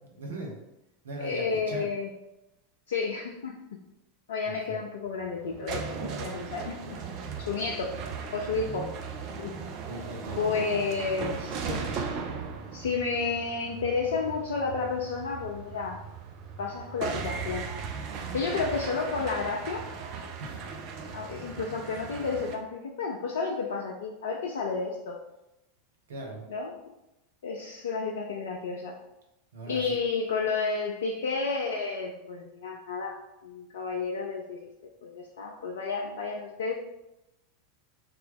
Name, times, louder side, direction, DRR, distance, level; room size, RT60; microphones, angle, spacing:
voice 1, 0.0-0.6 1.0-1.9 4.4-4.8 7.3-7.4 8.5-8.9 9.9-10.6 18.1-18.4 20.4-20.6 26.1-26.4 29.5-30.0, right 2 dB, 70° right, 1 dB, 0.9 m, -40 dB
voice 2, 1.2-2.1 2.9-3.6 4.3-6.7 7.4-7.9 8.3-8.9 9.4-9.5 10.4-12.1 12.7-16.0 16.6-17.7 18.3-19.9 21.1-25.2 26.5-26.7 27.4-29.0 29.7-34.6 35.0-36.7, left 4 dB, 65° left, 0 dB, 0.4 m, -31 dB
sound 1, 5.1-22.6, right 5 dB, 45° right, 0.5 m, -38 dB
3.3 x 2.9 x 3.5 m, 0.92 s
figure-of-eight pair, 85°, 0 cm